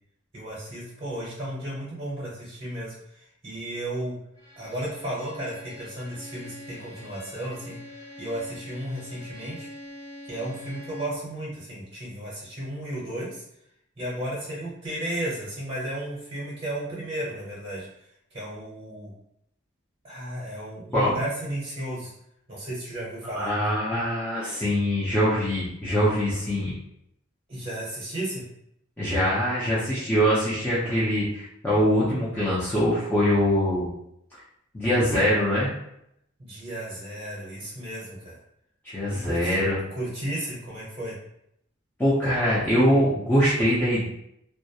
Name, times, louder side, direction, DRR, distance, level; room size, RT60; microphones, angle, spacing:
voice 1, 0.3-4.1 4.6-7.8 8.2-9.7 10.2-13.4 14.0-17.9 18.3-19.1 20.0-22.1 22.5-23.5 27.5-28.4 36.4-38.4 39.1-39.6 39.9-41.1, right 1 dB, 30° right, -7 dB, 0.7 m, -34 dB
Bowed string instrument, 4.3-11.3, left 1 dB, 60° left, 1.3 m, -44 dB
voice 2, 23.3-26.7 29.0-33.9 34.7-35.7 38.8-39.8 42.0-44.0, equal, 10° left, -9 dB, 0.5 m, -23 dB
2.2 x 2.0 x 2.7 m, 0.76 s
head